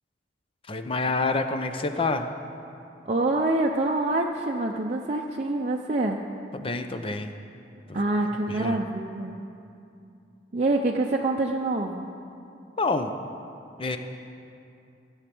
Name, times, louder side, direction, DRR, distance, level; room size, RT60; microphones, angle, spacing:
voice 1, 0.7-2.3 6.5-7.3 7.9-8.0 8.5-8.8 12.8-13.1 13.8-14.0, left 3 dB, 30° left, 7 dB, 0.7 m, -27 dB
voice 2, 3.1-6.2 7.9-9.3 10.5-12.1, right 2 dB, 40° right, -1 dB, 0.6 m, -26 dB
15.0 x 8.1 x 6.1 m, 2.6 s
head